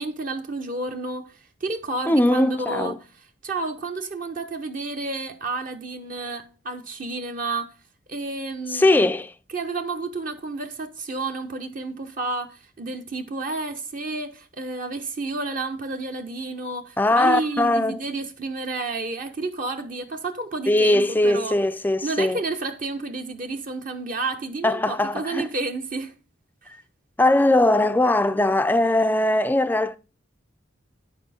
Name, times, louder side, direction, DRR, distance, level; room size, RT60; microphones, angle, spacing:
voice 1, 0.0-3.0 3.4-7.7 8.1-9.1 9.5-21.6 22.0-26.2 26.6-26.7, right 3 dB, 45° right, 0.8 m, -31 dB
voice 2, 2.1-3.0 8.7-9.3 17.0-18.0 20.7-22.4 24.6-25.5 26.7-26.8 27.2-30.0, left 1 dB, 10° left, 0.4 m, -20 dB
9.7 x 6.9 x 4.1 m
head